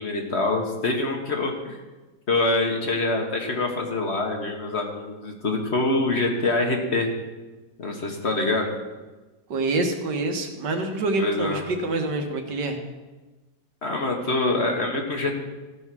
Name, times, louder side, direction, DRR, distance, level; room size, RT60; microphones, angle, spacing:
voice 1, 0.0-1.8 2.3-7.1 7.8-8.7 11.2-11.6 13.8-15.3, left 2 dB, 45° left, 2 dB, 1.4 m, -25 dB
voice 2, 9.5-12.8, right 2 dB, 80° right, 4 dB, 1.8 m, -26 dB
15.0 x 5.5 x 6.1 m, 1.2 s
omnidirectional pair, 1.8 m